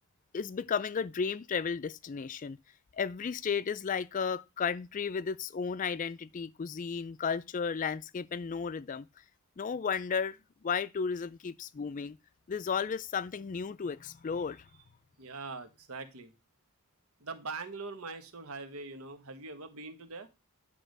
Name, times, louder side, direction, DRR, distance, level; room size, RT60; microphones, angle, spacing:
voice 1, 0.3-2.6 3.0-9.1 9.6-10.4 10.6-12.2 12.5-14.7, left 6 dB, 35° left, 0.4 m, -33 dB
voice 2, 15.2-16.3 17.2-20.3, right 3 dB, 85° right, 1.4 m, -42 dB
10.0 x 3.5 x 6.5 m
head